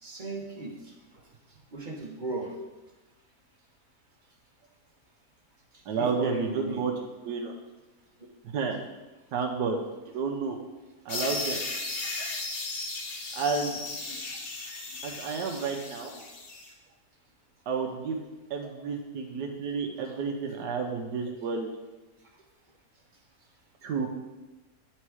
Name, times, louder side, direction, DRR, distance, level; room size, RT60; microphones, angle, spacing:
voice 1, 0.0-1.2 1.7-2.5 6.0-6.8 12.6-12.7 14.1-14.2 15.6-15.7 16.1-16.2, right 2 dB, 35° right, 0 dB, 1.1 m, -37 dB
voice 2, 5.9-6.9 7.2-7.5 8.5-8.8 9.3-9.8 10.1-10.6 11.0-11.6 13.3-13.8 15.0-16.1 17.7-18.2 18.5-21.7 23.8-24.1, right 5 dB, 90° right, 2 dB, 1.4 m, -30 dB
sound 1, 11.1-16.7, left 3 dB, 60° left, 1.5 m, -36 dB
9.5 x 4.4 x 4.8 m, 1.1 s
omnidirectional pair, 1.7 m